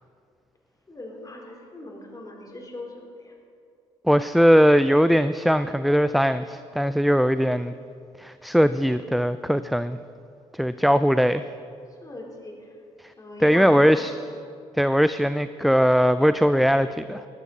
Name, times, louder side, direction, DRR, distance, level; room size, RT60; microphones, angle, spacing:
voice 1, 0.9-3.3 12.0-12.6 13.2-14.0, left 1 dB, 25° left, 0 dB, 3.9 m, -39 dB
voice 2, 4.0-7.7 8.2-10.0 10.5-11.4 13.4-14.1 14.8-17.3, equal, ahead, 13 dB, 0.4 m, -20 dB
16.5 x 12.5 x 4.2 m, 2.4 s
hypercardioid pair, 55°, 14 cm